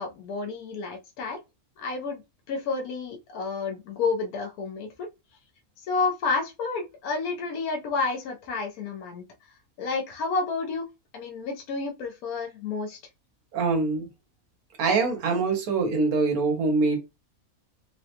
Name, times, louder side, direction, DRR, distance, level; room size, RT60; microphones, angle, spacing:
voice 1, 0.0-1.4 1.8-2.2 2.5-5.1 5.9-9.2 9.8-10.9 11.1-13.0, left 4 dB, 80° left, 1.2 m, -30 dB
voice 2, 13.5-14.1 14.8-17.0, right 3 dB, 90° right, 1.4 m, -24 dB
3.8 x 2.1 x 2.8 m
omnidirectional pair, 1.5 m